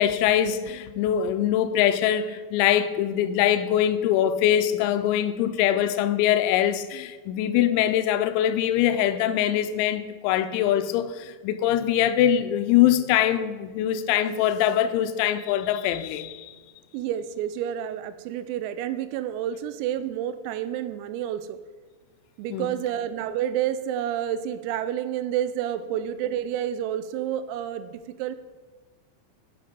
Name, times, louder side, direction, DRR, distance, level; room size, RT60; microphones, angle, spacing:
voice 1, 0.0-16.6 22.5-22.7, left 11 dB, 90° left, 3.3 m, -23 dB
voice 2, 16.9-21.6 22.4-28.4, right 10 dB, 90° right, 3.3 m, -29 dB
9.4 x 7.7 x 5.1 m
omnidirectional pair, 5.9 m